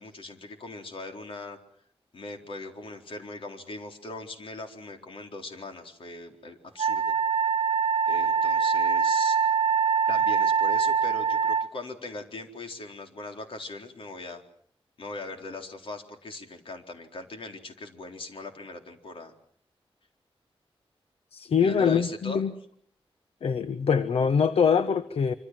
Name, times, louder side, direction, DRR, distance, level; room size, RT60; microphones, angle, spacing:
voice 1, 0.0-1.6 2.1-7.1 8.1-9.4 10.1-14.4 15.0-19.3 21.6-22.4, left 2 dB, 65° left, 5 dB, 4.0 m, -40 dB
Wind instrument woodwind instrument, 6.8-11.7, right 6 dB, 85° right, 1.0 m, -24 dB
voice 2, 21.3-22.5 23.4-25.3, left 6 dB, 80° left, 12 dB, 1.1 m, -24 dB
26.0 x 26.0 x 7.7 m, 0.63 s
wide cardioid pair, 150°, 10 cm